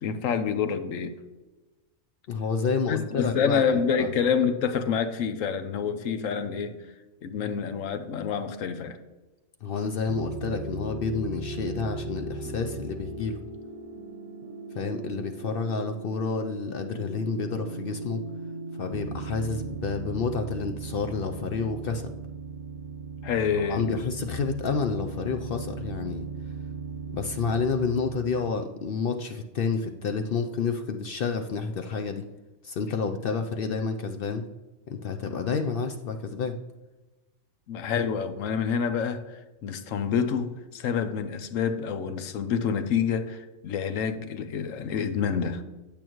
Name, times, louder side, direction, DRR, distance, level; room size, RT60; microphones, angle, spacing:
voice 1, 0.0-1.2 2.9-6.8 7.2-9.0 23.2-24.0 37.7-45.6, left 6 dB, 85° left, 1.1 m, -27 dB
voice 2, 2.3-4.1 9.6-13.4 14.7-18.2 18.8-22.1 23.6-26.3 27.1-32.3 32.6-34.5 34.9-36.6, left 5 dB, 60° left, 0.6 m, -29 dB
sound 1, 10.1-28.5, right 3 dB, 45° right, 0.9 m, -38 dB
8.6 x 8.6 x 3.0 m
omnidirectional pair, 1.3 m